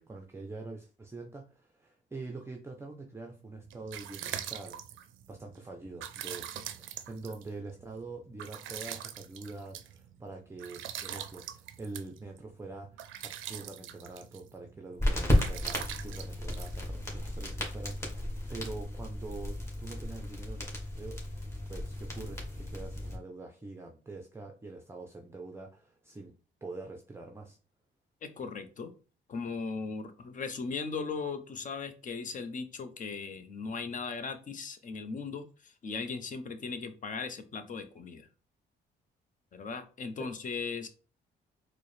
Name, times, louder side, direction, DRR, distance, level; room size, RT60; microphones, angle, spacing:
voice 1, 0.0-4.8 5.3-21.2 21.7-26.3 26.6-27.6 40.2-40.3, right 3 dB, 15° right, 2 dB, 0.5 m, -45 dB
sound 1, 3.5-17.4, right 10 dB, 80° right, 0.4 m, -43 dB
sound 2, 15.0-23.1, left 1 dB, 15° left, 1.4 m, -33 dB
voice 2, 28.2-28.9 29.3-38.3 39.5-40.9, left 4 dB, 40° left, 9 dB, 0.7 m, -38 dB
4.4 x 2.1 x 3.2 m, 0.36 s
cardioid pair, 90°, 20 cm